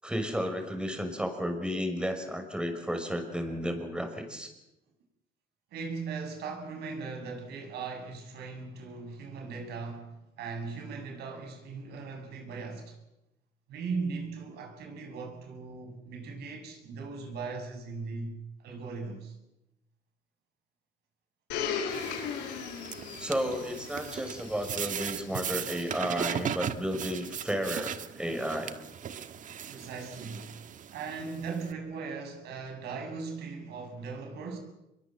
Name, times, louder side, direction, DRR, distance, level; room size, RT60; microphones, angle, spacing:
voice 1, 0.0-4.5 23.2-28.8, equal, 5° right, 5.9 m, -33 dB
voice 2, 5.7-13.0 13.7-19.3 29.7-30.5 30.9-34.6, right 4 dB, 75° right, 7.4 m, -38 dB
Domestic sounds home sounds, 21.5-26.3 27.1-27.2, left 7 dB, 85° left, 5.8 m, -38 dB
sound 1, 21.9-31.7, right 8 dB, 50° right, 1.6 m, -38 dB
26.5 x 22.5 x 7.5 m
cardioid pair, 110°, 17 cm